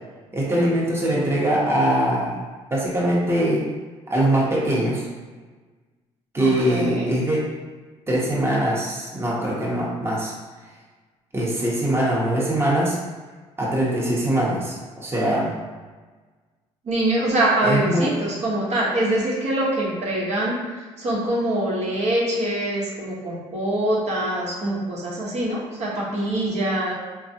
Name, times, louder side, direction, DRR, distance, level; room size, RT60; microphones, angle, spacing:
voice 1, 0.3-2.4 2.7-3.6 4.1-5.1 6.3-7.5 8.1-10.3 11.3-13.0 13.6-15.5 17.6-18.1, right 1 dB, 20° right, -5 dB, 0.9 m, -22 dB
voice 2, 6.4-7.1 16.8-20.6 21.0-26.9, right 1 dB, 55° right, -5 dB, 0.9 m, -24 dB
3.4 x 2.2 x 2.7 m, 1.3 s
supercardioid pair, 65°, 14 cm